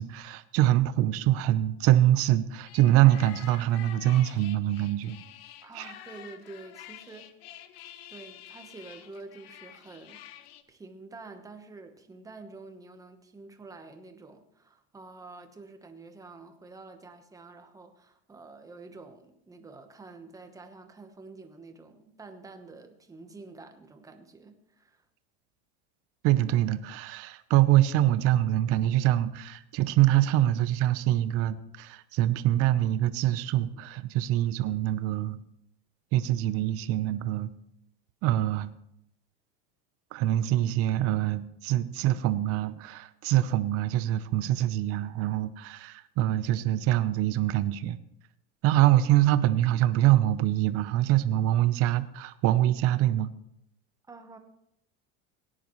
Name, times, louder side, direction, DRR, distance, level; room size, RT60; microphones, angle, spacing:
voice 1, 0.0-5.2 5.7-5.9 26.2-35.4 36.1-37.5 38.2-38.7 40.1-48.0 48.6-53.3, right 14 dB, 50° right, 13 dB, 0.8 m, -24 dB
sound 1, 2.6-10.6, left 11 dB, 85° left, 1.0 m, -48 dB
voice 2, 5.6-7.3 8.1-25.0 54.0-54.4, right 3 dB, 10° right, 6 dB, 1.1 m, -48 dB
18.0 x 10.0 x 3.1 m, 0.77 s
supercardioid pair, 145°, 30 cm